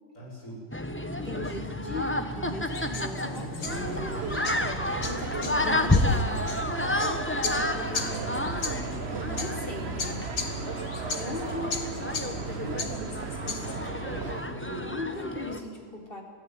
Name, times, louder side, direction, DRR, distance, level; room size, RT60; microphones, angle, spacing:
voice 1, 0.1-0.6 1.2-1.7 3.2-3.6 6.3-6.5 12.4-12.8 14.0-15.0, right 1 dB, 50° left, -3 dB, 8.1 m, -41 dB
sound 1, 0.7-15.6, left 1 dB, 10° left, 1.1 m, -31 dB
voice 2, 1.2-6.4 7.4-8.7 9.2-10.3 11.2-12.2 12.6-13.9 14.8-16.2, left 2 dB, 35° left, 1 dB, 4.1 m, -39 dB
sound 2, 2.7-13.8, left 4 dB, 85° left, 2.7 m, -38 dB
sound 3, 3.7-14.4, right 4 dB, 40° right, 1.4 m, -35 dB
23.5 x 15.5 x 9.5 m, 2.1 s
omnidirectional pair, 1.8 m